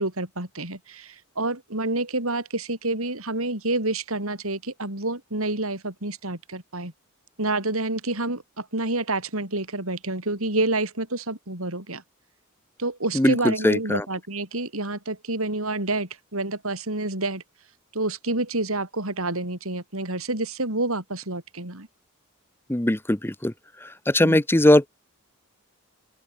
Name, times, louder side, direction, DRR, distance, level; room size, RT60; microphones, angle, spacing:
voice 1, 0.0-6.9 7.4-12.0 12.8-17.4 17.9-21.9 24.2-24.4, right 2 dB, 75° right, 7.0 m, -28 dB
voice 2, 13.1-14.0 22.7-23.5 23.8-24.9, left 1 dB, 10° left, 0.9 m, -20 dB
open air
head